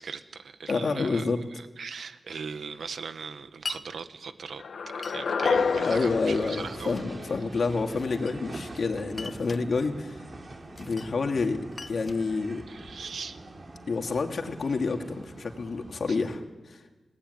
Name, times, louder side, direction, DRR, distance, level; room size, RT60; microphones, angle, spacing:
voice 1, 0.0-4.6 5.0-7.0 12.7-13.4 16.1-16.2, right 5 dB, 75° right, 9 dB, 1.5 m, -39 dB
voice 2, 0.7-1.4 5.8-10.2 10.8-11.6 11.9-12.6 13.9-16.8, left 4 dB, 60° left, 4 dB, 2.6 m, -28 dB
Glass, 3.7-3.9 5.0-5.6 6.4-7.1 8.0-8.7 9.1-9.7 10.7-11.2 11.4-13.1, left 3 dB, 40° left, 0.8 m, -42 dB
sound 1, 4.6-7.7, left 5 dB, 85° left, 1.8 m, -29 dB
sound 2, 5.5-16.4, right 2 dB, 40° right, 3.6 m, -44 dB
28.0 x 19.0 x 9.8 m, 1.2 s
wide cardioid pair, 135°, 0 cm